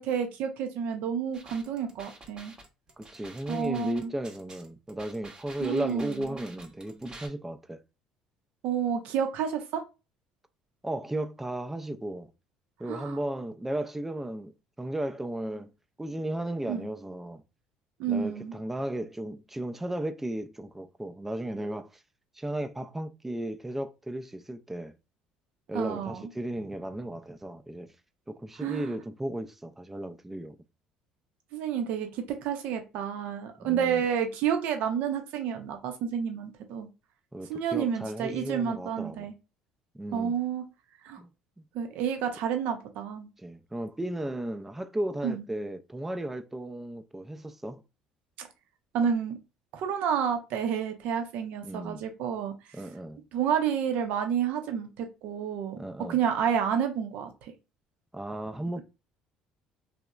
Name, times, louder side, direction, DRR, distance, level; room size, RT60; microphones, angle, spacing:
voice 1, 0.0-2.5 3.5-4.1 5.6-6.3 8.6-9.8 12.9-13.2 16.7-16.9 18.0-18.5 25.7-26.2 28.6-28.9 31.5-36.9 37.5-39.3 40.1-40.6 41.0-41.2 41.7-43.3 45.2-45.4 48.4-48.5 48.9-49.4 49.7-52.5 53.3-55.8 56.1-57.5, right 8 dB, 70° right, 0.5 m, -30 dB
sound 1, 1.3-7.3, right 2 dB, 30° right, 0.7 m, -49 dB
voice 2, 3.0-7.8 10.8-12.3 12.8-15.7 16.0-17.4 18.1-21.9 22.4-24.9 25.7-27.9 28.3-30.6 33.6-34.0 37.3-39.3 39.9-40.4 41.2-41.3 43.4-47.8 51.6-52.0 52.7-53.2 55.8-56.2 58.1-58.8, right 1 dB, 10° right, 0.3 m, -35 dB
2.9 x 2.0 x 2.2 m
supercardioid pair, 75°, 3 cm